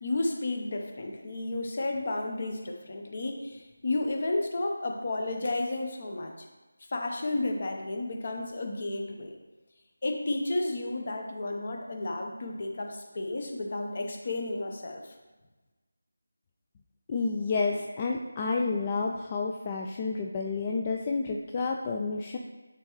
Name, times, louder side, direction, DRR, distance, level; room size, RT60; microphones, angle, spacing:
voice 1, 0.0-6.5 6.9-9.4 10.0-15.1, left 2 dB, 45° left, 3 dB, 0.8 m, -32 dB
voice 2, 17.1-22.4, left 4 dB, 25° left, 1 dB, 0.3 m, -30 dB
10.0 x 3.5 x 3.1 m, 1.2 s
figure-of-eight pair, 165°, 0 cm